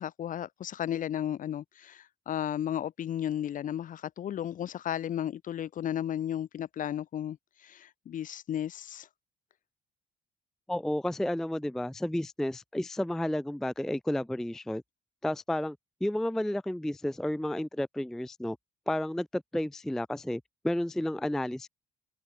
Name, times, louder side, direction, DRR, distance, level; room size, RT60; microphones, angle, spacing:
voice 1, 0.0-7.4 7.6-9.1, left 10 dB, 50° left, 1.3 m, -34 dB
voice 2, 10.7-14.8 15.2-18.6 18.9-21.7, left 1 dB, 5° left, 0.3 m, -31 dB
cardioid pair, 110°, 17 cm